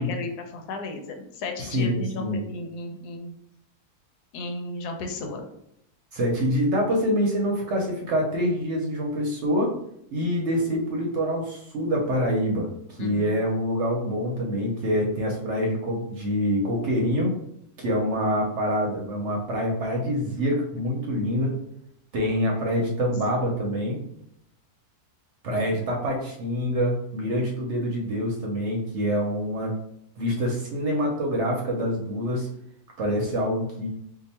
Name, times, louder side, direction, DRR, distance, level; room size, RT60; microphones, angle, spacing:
voice 1, 0.0-3.3 4.3-5.5 13.0-13.3 25.6-25.8, left 3 dB, 90° left, 4 dB, 1.2 m, -34 dB
voice 2, 1.6-2.4 6.1-9.7 10.1-17.3 17.8-21.6 22.1-24.0 25.4-29.7 30.2-32.5 33.0-33.9, equal, 60° right, 0 dB, 0.8 m, -26 dB
2.8 x 2.3 x 4.1 m, 0.74 s
omnidirectional pair, 1.6 m